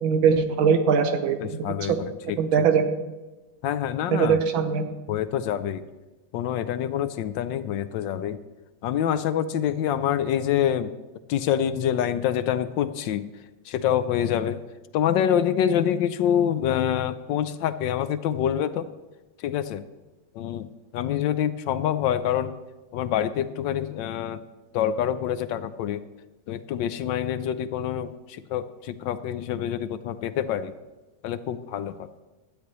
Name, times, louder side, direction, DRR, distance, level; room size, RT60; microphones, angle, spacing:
voice 1, 0.0-2.0 2.4-2.8 4.1-4.8, right 6 dB, 85° right, 8 dB, 1.8 m, -21 dB
voice 2, 1.4-2.4 3.6-4.4 5.1-5.8 6.3-8.4 8.8-10.9 11.3-13.3 13.7-14.6 14.9-18.9 19.4-19.8 20.3-22.5 22.9-24.4 24.7-26.0 26.5-30.7 31.2-32.2, left 10 dB, 75° left, 12 dB, 1.3 m, -26 dB
16.5 x 12.5 x 3.1 m, 1.1 s
omnidirectional pair, 2.1 m